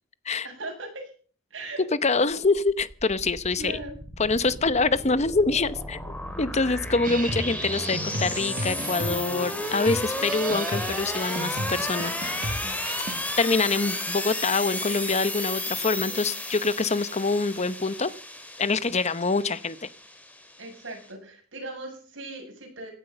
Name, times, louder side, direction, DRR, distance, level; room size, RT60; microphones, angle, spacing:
voice 1, 0.4-1.1 1.5-1.9 3.6-4.0 16.1-16.3 20.6-22.9, right 2 dB, 65° right, 3 dB, 7.5 m, -38 dB
voice 2, 1.8-3.8 4.2-12.8 13.4-18.1 18.6-19.9, left 3 dB, 35° left, 16 dB, 0.8 m, -25 dB
sound 1, 2.3-21.0, left 1 dB, 10° left, 3.0 m, -33 dB
sound 2, 7.0-13.3, right 2 dB, 40° right, 1.4 m, -35 dB
17.5 x 12.0 x 6.8 m, 0.43 s
head